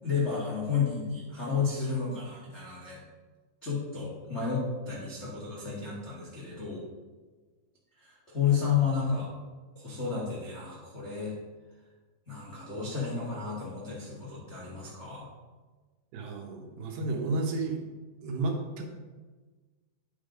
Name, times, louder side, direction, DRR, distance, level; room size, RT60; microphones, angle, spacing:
voice 1, 0.0-3.0 3.6-6.8 8.0-9.3 9.7-11.3 12.3-15.3, left 6 dB, 85° left, -6 dB, 0.6 m, -31 dB
voice 2, 16.1-17.8 18.2-18.9, right 2 dB, 80° right, 2 dB, 2.7 m, -32 dB
9.5 x 3.9 x 4.9 m, 1.3 s
omnidirectional pair, 4.1 m